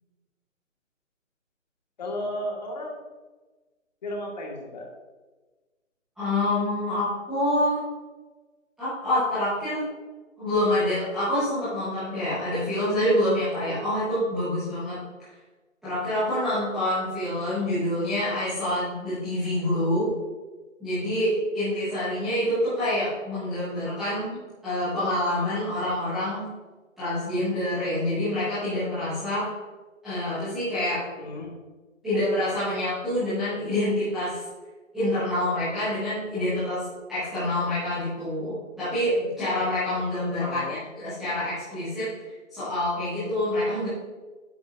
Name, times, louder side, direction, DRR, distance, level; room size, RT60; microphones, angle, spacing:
voice 1, 2.0-3.0 4.0-4.9 31.2-31.5 40.4-40.8, left 1 dB, 35° left, -1 dB, 1.6 m, -34 dB
voice 2, 6.2-7.8 8.8-9.9 10.4-15.0 15.8-20.1 20.8-26.5 27.0-29.5 30.0-31.1 32.0-34.4 34.9-42.1 42.5-43.9, left 1 dB, ahead, -19 dB, 0.8 m, -27 dB
11.0 x 7.1 x 2.5 m, 1.3 s
figure-of-eight pair, 155°, 40 cm